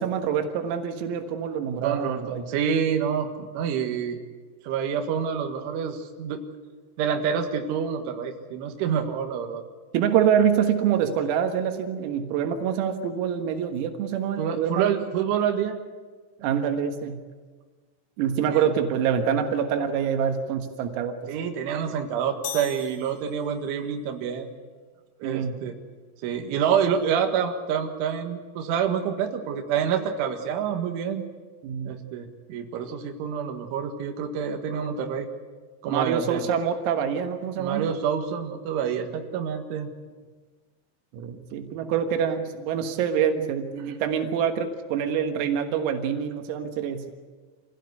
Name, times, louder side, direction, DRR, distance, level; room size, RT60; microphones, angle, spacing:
voice 1, 0.0-2.4 9.9-14.9 16.4-17.2 18.2-21.2 25.2-25.5 31.6-31.9 35.9-37.9 41.1-47.1, right 8 dB, 90° right, 6 dB, 4.3 m, -25 dB
voice 2, 1.8-4.2 4.6-6.4 7.0-9.6 14.4-15.8 18.5-18.7 21.3-24.5 25.2-25.8 26.2-31.3 31.9-35.3 35.8-36.5 37.6-39.9, right 7 dB, 70° right, 4 dB, 4.0 m, -27 dB
sound 1, 22.4-23.8, left 9 dB, 60° left, 3.4 m, -39 dB
26.5 x 16.5 x 9.7 m, 1.4 s
omnidirectional pair, 5.9 m